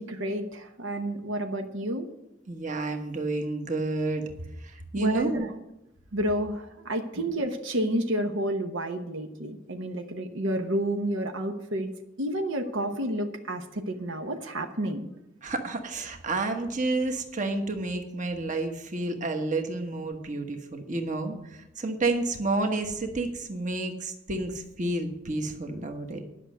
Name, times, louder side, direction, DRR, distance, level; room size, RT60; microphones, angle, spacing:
voice 1, 0.0-2.1 5.0-5.5 6.1-11.9 12.2-15.1, right 1 dB, 80° right, 5 dB, 1.0 m, -30 dB
voice 2, 2.5-4.3 4.6-5.4 15.4-26.2, right 2 dB, 40° right, 5 dB, 1.3 m, -30 dB
10.5 x 6.3 x 7.9 m, 0.88 s
head